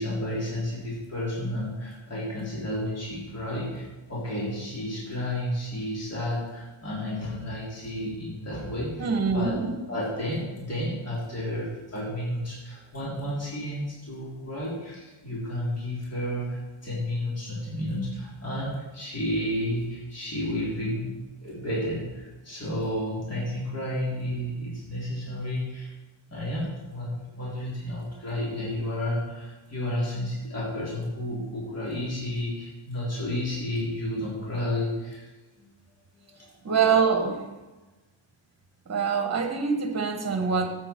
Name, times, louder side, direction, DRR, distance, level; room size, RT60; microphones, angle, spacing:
voice 1, 0.0-9.6 9.9-25.9 26.3-35.3 35.6-35.7 36.2-36.5, left 1 dB, 30° left, -7 dB, 3.7 m, -31 dB
voice 2, 9.0-9.7 36.6-37.5 38.9-40.7, right 5 dB, 35° right, 5 dB, 1.5 m, -24 dB
13.0 x 7.9 x 4.5 m, 1.1 s
wide cardioid pair, 160°, 47 cm